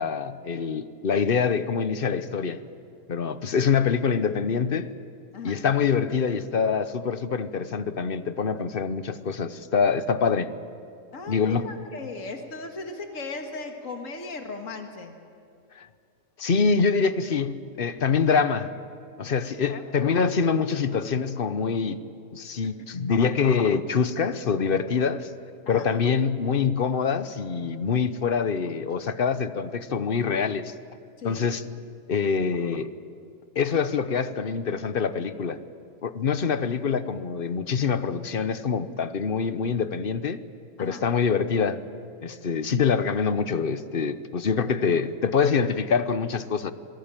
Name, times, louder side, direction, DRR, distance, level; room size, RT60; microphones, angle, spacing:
voice 1, 0.0-2.6 3.1-4.9 5.4-10.5 11.3-11.7 15.8-15.9 16.4-18.7 19.2-22.0 22.3-25.3 25.7-30.7 31.2-31.6 32.1-32.9 33.5-35.6 36.0-40.4 40.8-41.8 42.2-46.7, left 6 dB, 45° left, 12 dB, 1.0 m, -25 dB
voice 2, 11.1-15.1 18.3-18.4 19.7-19.9 25.7-25.9 31.2-31.6 40.8-41.0, left 3 dB, 70° left, 4 dB, 2.1 m, -37 dB
26.0 x 18.0 x 9.0 m, 2.4 s
omnidirectional pair, 1.4 m